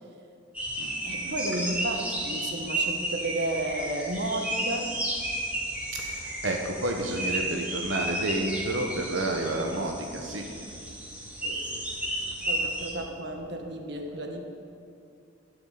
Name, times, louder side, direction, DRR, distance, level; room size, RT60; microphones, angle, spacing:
sound 1, 0.5-12.9, right 1 dB, 5° right, 2.1 m, -33 dB
voice 1, 1.0-5.0 11.4-14.4, right 1 dB, 60° right, 3 dB, 1.5 m, -33 dB
voice 2, 5.9-10.4, right 2 dB, 90° right, 2 dB, 1.1 m, -30 dB
12.0 x 7.1 x 8.5 m, 2.4 s
head